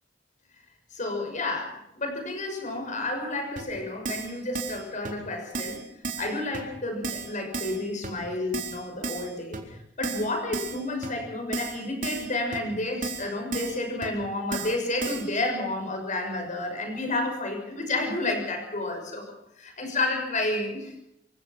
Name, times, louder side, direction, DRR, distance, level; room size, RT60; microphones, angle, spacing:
voice 1, 0.9-5.9 6.2-21.0, left 2 dB, 40° left, 4 dB, 6.4 m, -31 dB
Keyboard (musical), 3.6-3.7 4.0-4.3 4.5-4.8 5.0-5.1 5.5-5.8 6.0-6.3 6.5-6.6 7.0-7.3 7.5-7.8 8.0-8.1 8.5-8.8 9.0-9.3 9.5-9.6 10.0-10.3 10.5-10.8 11.0-11.1 11.5-11.8 12.0-12.3 12.5-12.6 13.0-13.2 13.5-13.7 14.0-14.1 14.5-14.7 15.0-15.2, right 4 dB, 45° right, 3.9 m, -33 dB
26.5 x 16.5 x 6.1 m, 0.80 s
head